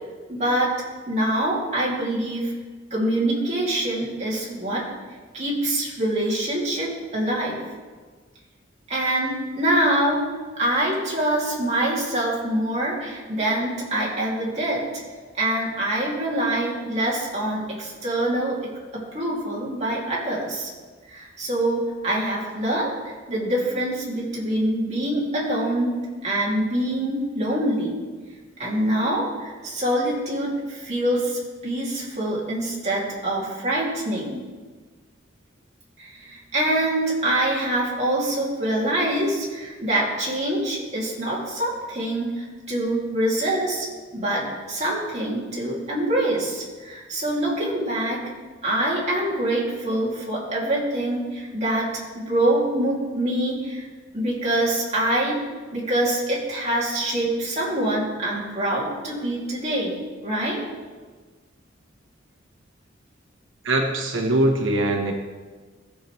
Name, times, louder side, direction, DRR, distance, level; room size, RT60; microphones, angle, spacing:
voice 1, 0.3-0.7 1.1-2.5 2.9-4.8 5.3-7.6 8.9-10.2 10.5-14.8 15.3-18.5 18.9-20.7 21.1-26.0 26.2-28.0 28.6-34.4 36.0-43.9 44.1-48.2 48.6-53.9 54.1-55.4 55.7-60.6, right 1 dB, 35° right, -5 dB, 2.6 m, -25 dB
voice 2, 63.6-65.1, right 1 dB, 75° right, 2 dB, 1.1 m, -22 dB
15.0 x 6.7 x 3.2 m, 1.4 s
head